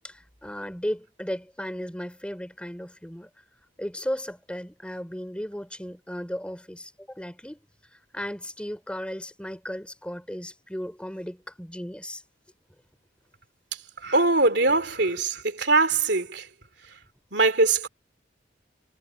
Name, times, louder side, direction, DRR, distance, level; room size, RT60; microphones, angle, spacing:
voice 1, 0.0-3.3 3.8-7.6 7.9-12.2 14.7-14.8 15.1-15.2, equal, 5° left, 3.6 m, -35 dB
voice 2, 14.0-16.5 17.3-17.9, right 3 dB, 65° right, 3.1 m, -22 dB
head